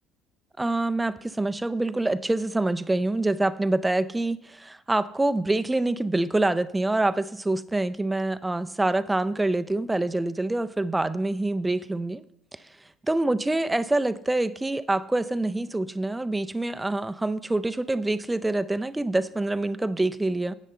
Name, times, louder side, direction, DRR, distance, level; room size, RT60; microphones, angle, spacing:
voice 1, 0.6-12.2 13.1-20.5, right 2 dB, 15° right, 12 dB, 0.5 m, -26 dB
10.0 x 8.2 x 4.4 m, 0.74 s
figure-of-eight pair, 55°, 0 cm